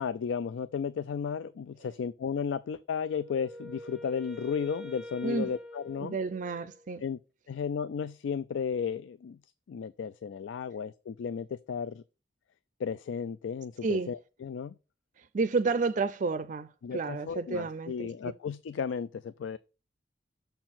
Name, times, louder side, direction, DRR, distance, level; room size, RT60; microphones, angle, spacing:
voice 1, 0.0-6.2 7.0-7.2 7.5-9.4 9.7-12.0 12.8-14.7 16.8-19.6, left 6 dB, 90° left, 0.3 m, -34 dB
Wind instrument woodwind instrument, 3.0-6.9, left 1 dB, ahead, 0.7 m, -45 dB
voice 2, 5.2-5.5 6.0-7.0 13.8-14.1 15.3-18.1, right 4 dB, 45° right, 0.4 m, -30 dB
6.6 x 4.4 x 5.8 m
head